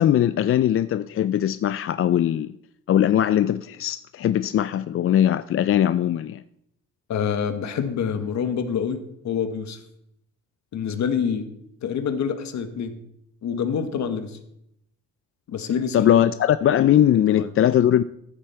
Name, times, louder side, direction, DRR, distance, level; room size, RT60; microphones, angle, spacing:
voice 1, 0.0-2.5 2.9-6.4 15.9-18.0, left 11 dB, 45° left, 0.4 m, -20 dB
voice 2, 7.1-9.8 10.7-11.5 11.8-13.0 13.4-14.4 15.5-16.2 17.3-17.5, left 7 dB, 65° left, 1.4 m, -26 dB
14.0 x 7.8 x 4.4 m
cardioid pair, 90°, 30 cm